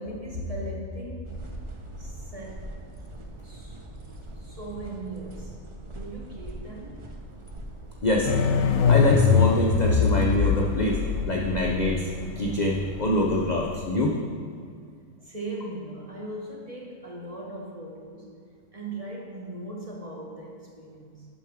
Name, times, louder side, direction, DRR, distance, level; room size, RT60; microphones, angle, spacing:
voice 1, 0.0-1.4 1.9-2.7 3.4-3.8 4.3-7.1 14.6-14.7 15.2-18.3 18.7-21.3, right 1 dB, 30° right, -2 dB, 1.0 m, -38 dB
sound 1, 1.2-11.8, right 1 dB, 45° right, 0.4 m, -42 dB
sound 2, 8.3-13.8, left 5 dB, 80° left, 1.0 m, -23 dB
voice 2, 8.9-11.0 11.3-12.1 12.4-14.2, left 1 dB, 60° left, -1 dB, 0.4 m, -24 dB
8.3 x 6.2 x 3.5 m, 2.1 s
omnidirectional pair, 1.5 m